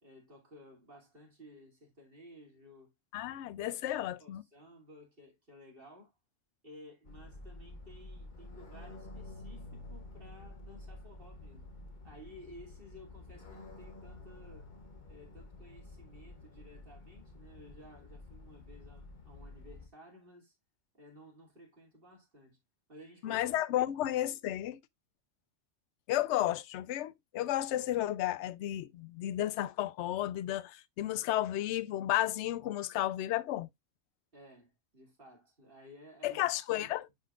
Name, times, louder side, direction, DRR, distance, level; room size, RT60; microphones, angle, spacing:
voice 1, 0.0-2.9 3.9-6.1 6.6-11.7 12.0-14.7 15.1-20.5 20.9-22.6 22.9-23.5 23.8-24.2 34.3-36.4 36.8-36.9, equal, 45° right, 3.0 m, -55 dB
voice 2, 3.1-4.4 23.2-24.8 26.1-33.7 36.2-37.1, left 13 dB, 70° left, 0.8 m, -33 dB
sound 1, 7.0-19.9, left 2 dB, 40° left, 1.2 m, -50 dB
10.5 x 3.9 x 2.4 m
omnidirectional pair, 1.3 m